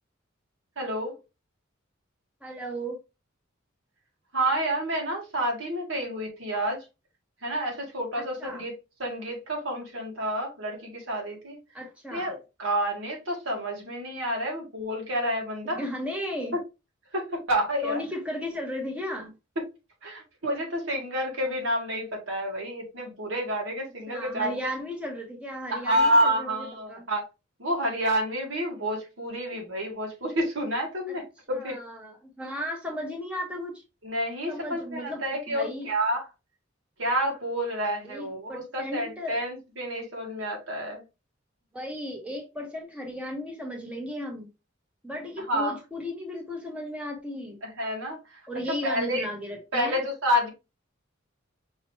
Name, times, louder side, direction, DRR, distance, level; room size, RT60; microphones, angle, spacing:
voice 1, 0.8-1.2 4.3-6.8 7.4-8.7 9.0-11.6 12.1-15.8 17.1-18.0 20.0-24.6 25.7-27.2 27.6-31.8 34.0-36.3 37.0-41.0 45.5-45.7 47.6-48.4 48.8-49.3 49.7-50.5, equal, 75° right, 1.8 m, -29 dB
voice 2, 2.4-3.0 8.2-8.6 11.7-12.3 15.6-16.6 17.8-19.3 24.1-27.1 31.1-31.2 31.5-33.8 34.5-35.2 35.5-35.9 38.0-39.4 41.7-44.5 45.0-47.6 48.5-50.0, left 1 dB, 5° right, 1.0 m, -35 dB
5.4 x 2.9 x 3.1 m
head